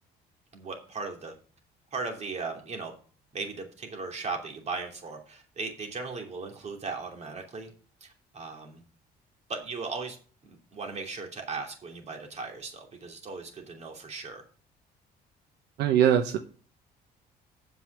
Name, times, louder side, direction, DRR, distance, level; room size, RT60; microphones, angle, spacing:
voice 1, 0.5-1.3 1.9-2.9 3.3-7.7 8.0-8.8 9.5-10.2 10.5-14.4, right 4 dB, 40° right, 3 dB, 2.9 m, -37 dB
voice 2, 15.8-16.4, right 10 dB, 85° right, 7 dB, 1.0 m, -21 dB
7.8 x 5.5 x 6.8 m, 0.39 s
cardioid pair, 110°, 17 cm